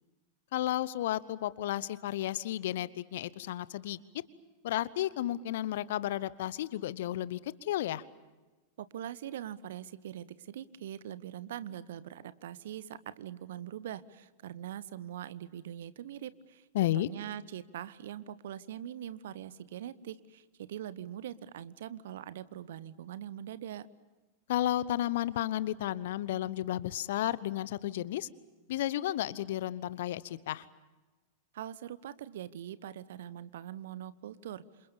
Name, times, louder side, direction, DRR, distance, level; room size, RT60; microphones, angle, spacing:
voice 1, 0.5-4.0 4.6-8.0 16.7-17.1 24.5-28.3 28.7-30.7, left 13 dB, 55° left, 19 dB, 0.9 m, -32 dB
voice 2, 8.8-23.9 31.5-34.6, right 11 dB, 60° right, 17 dB, 1.0 m, -42 dB
27.5 x 27.5 x 7.0 m, 1.2 s
figure-of-eight pair, 90°, 0 cm